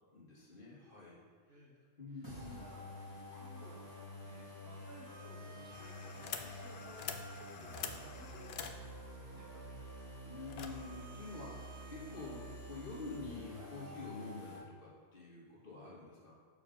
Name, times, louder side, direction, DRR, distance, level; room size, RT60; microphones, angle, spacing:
voice 1, 0.1-1.2 2.0-2.6 3.1-3.2 6.7-6.8 10.2-16.3, left 3 dB, 50° left, -5 dB, 1.8 m, -48 dB
voice 2, 1.5-1.8 2.1-3.0 3.3-3.9 4.2-10.1, right 1 dB, 65° right, -1 dB, 1.3 m, -59 dB
sound 1, 2.2-14.6, equal, 20° right, 1.9 m, -49 dB
sound 2, 5.7-13.2, left 7 dB, 70° left, 0.8 m, -48 dB
6.8 x 6.3 x 3.7 m, 1.6 s
omnidirectional pair, 1.1 m